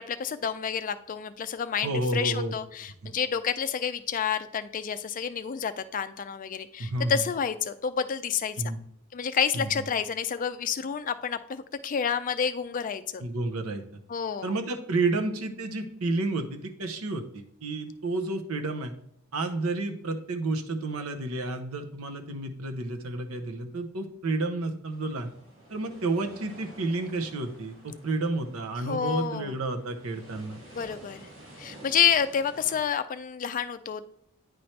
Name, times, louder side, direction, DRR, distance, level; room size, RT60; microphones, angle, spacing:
voice 1, 0.0-8.6 9.1-13.2 14.1-14.5 28.8-29.5 30.7-31.3 31.6-34.0, left 7 dB, 40° left, 11 dB, 0.4 m, -29 dB
voice 2, 1.8-2.5 3.0-3.1 6.8-7.2 8.6-8.8 9.5-9.7 13.2-14.0 14.4-18.9 19.3-25.3 25.7-30.6, right 2 dB, 85° right, 5 dB, 0.8 m, -31 dB
sound 1, 24.9-32.8, right 1 dB, 60° right, 2.4 m, -50 dB
9.3 x 4.3 x 3.2 m, 0.72 s
head